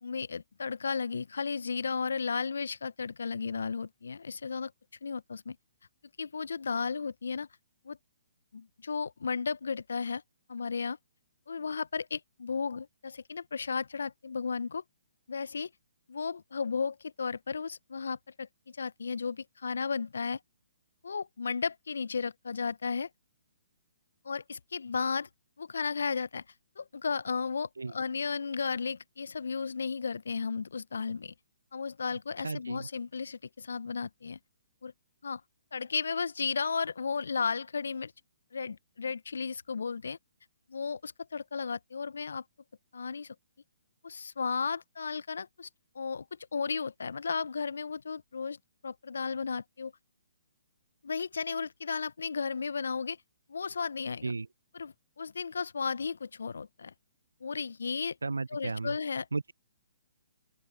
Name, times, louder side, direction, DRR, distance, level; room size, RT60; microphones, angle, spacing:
voice 1, 0.0-4.7 5.0-5.6 6.2-7.5 7.8-8.0 8.5-10.2 10.5-11.0 11.5-14.8 15.3-15.7 16.1-20.4 21.0-23.1 24.2-25.3 25.6-26.4 26.8-31.3 31.7-34.4 34.8-34.9 35.2-35.4 35.7-38.1 38.5-40.2 40.7-42.4 42.9-43.3 44.0-45.7 45.9-46.3 46.5-48.6 48.8-49.9 51.0-53.2 53.5-54.3 54.7-56.9 57.4-58.2 58.5-59.3, left 5 dB, 70° left, 1.2 m, -34 dB
voice 2, 32.4-32.9 54.2-54.5 58.2-59.0 59.3-59.5, right 3 dB, 80° right, 0.5 m, -34 dB
open air
figure-of-eight pair, 130°, 0 cm